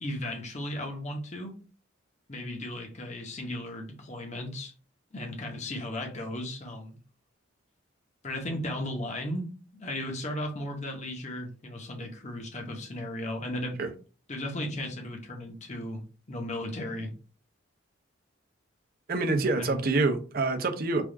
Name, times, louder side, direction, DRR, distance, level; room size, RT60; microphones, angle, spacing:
voice 1, 0.0-1.5 2.3-4.7 5.1-7.0 8.2-13.8 14.3-16.0 16.3-17.1 19.6-19.8, left 1 dB, 35° left, 2 dB, 0.8 m, -35 dB
voice 2, 19.1-21.0, right 3 dB, 45° right, 6 dB, 0.6 m, -26 dB
3.4 x 2.4 x 3.6 m, 0.36 s
head